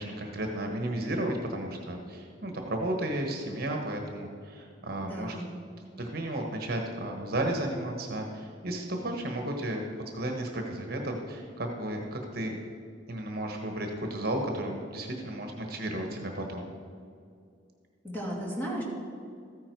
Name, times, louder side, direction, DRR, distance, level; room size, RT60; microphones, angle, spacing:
voice 1, 0.0-5.4 6.0-9.8 10.1-12.6 13.1-16.7, right 1 dB, 50° right, 3 dB, 1.2 m, -33 dB
voice 2, 5.0-5.4 18.0-18.8, equal, 10° left, -5 dB, 2.8 m, -34 dB
14.0 x 9.8 x 4.6 m, 2.3 s
head